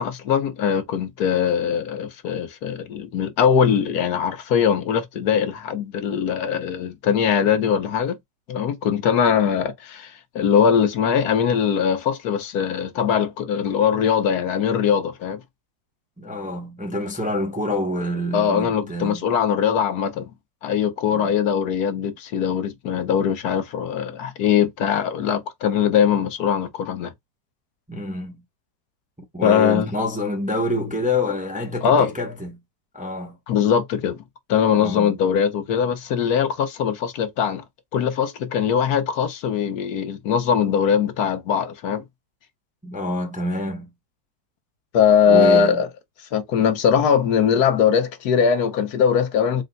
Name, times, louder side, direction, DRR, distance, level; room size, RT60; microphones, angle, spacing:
voice 1, 0.0-8.2 8.5-15.4 18.3-20.3 20.6-27.1 29.4-29.9 31.8-32.1 33.5-34.2 34.5-37.6 37.9-42.0 44.9-45.9 46.3-49.6, left 7 dB, 65° left, 1.4 m, -21 dB
voice 2, 16.2-19.3 27.9-28.4 29.2-32.6 32.9-33.4 34.7-35.2 42.8-43.9 45.3-45.8, left 1 dB, 10° right, 0.4 m, -27 dB
4.4 x 2.1 x 3.9 m
omnidirectional pair, 1.9 m